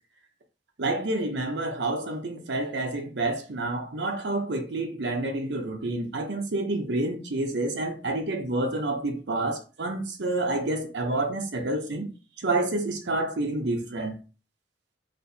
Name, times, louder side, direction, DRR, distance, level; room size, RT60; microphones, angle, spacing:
voice 1, 0.8-12.1 12.4-14.2, right 2 dB, 75° right, 0.7 m, -28 dB
4.3 x 2.9 x 2.7 m
head